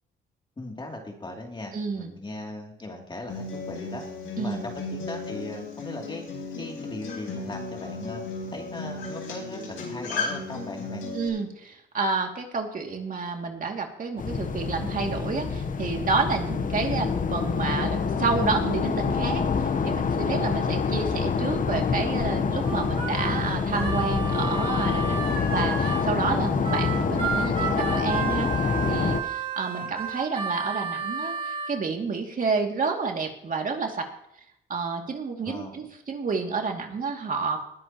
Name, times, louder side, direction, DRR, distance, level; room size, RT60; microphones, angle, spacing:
voice 1, 0.6-4.0 4.4-6.2 6.6-8.2 8.5-11.1 24.4-24.6 27.6-27.9 29.8-29.9 35.4-35.9, left 2 dB, 25° left, 0 dB, 2.9 m, -38 dB
voice 2, 1.7-2.1 4.4-4.7 11.1-19.4 19.8-28.5 28.9-34.1 34.7-37.6, right 4 dB, 45° right, 2 dB, 2.5 m, -29 dB
Acoustic guitar, 3.3-11.3, left 3 dB, 80° left, 5.1 m, -35 dB
sound 1, 14.2-29.2, left 5 dB, 40° left, 1.1 m, -26 dB
Harmonica, 22.6-26.1 26.6-31.7, right 5 dB, 30° right, 2.8 m, -32 dB
20.0 x 11.0 x 3.0 m, 0.80 s
cardioid pair, 90°, 20 cm